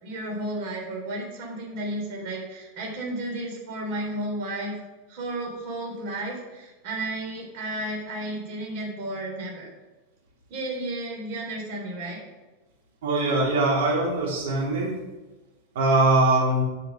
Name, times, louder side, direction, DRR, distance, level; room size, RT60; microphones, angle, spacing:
voice 1, 0.0-4.8 5.1-9.7 10.5-12.2, right 1 dB, 50° right, -1 dB, 3.7 m, -33 dB
voice 2, 13.0-14.9 15.7-16.6, right 2 dB, 80° right, -3 dB, 3.3 m, -22 dB
9.6 x 9.0 x 5.1 m, 1.2 s
supercardioid pair, 170°, 0 cm